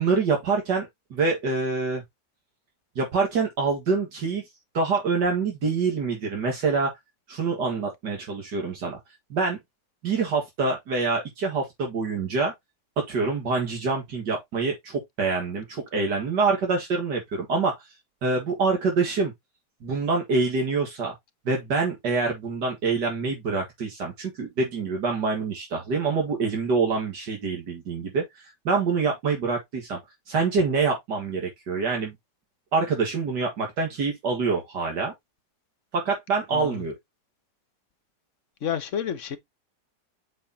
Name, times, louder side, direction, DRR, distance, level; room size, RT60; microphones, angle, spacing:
voice 1, 0.0-2.0 3.0-4.4 4.7-6.9 7.3-9.0 9.3-9.6 10.0-12.5 13.0-17.8 18.2-19.3 19.8-21.1 21.5-30.0 30.3-32.1 32.7-35.1 35.9-36.9, right 4 dB, 75° right, 2.4 m, -26 dB
voice 2, 36.5-36.8 38.6-39.4, left 9 dB, 50° left, 1.3 m, -30 dB
7.9 x 5.0 x 2.8 m
omnidirectional pair, 1.8 m